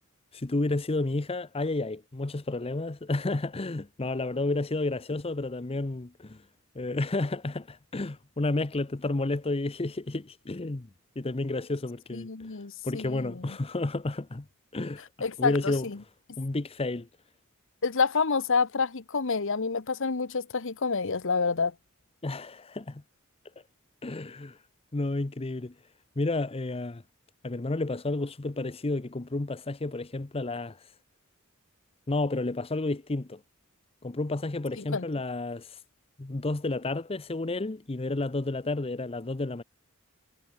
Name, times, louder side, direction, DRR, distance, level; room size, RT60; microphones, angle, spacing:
voice 1, 0.3-6.4 6.7-10.9 11.2-12.5 12.8-14.5 14.7-15.0 15.4-15.9 16.4-17.1 22.2-23.0 24.0-24.6 24.9-25.7 26.2-27.0 27.4-30.8 32.1-33.4 34.0-35.8 36.2-39.6, left 2 dB, 25° left, 0.7 m, -31 dB
voice 2, 12.1-13.4 15.2-16.0 17.8-21.7 34.8-35.0, left 5 dB, 65° left, 1.0 m, -28 dB
head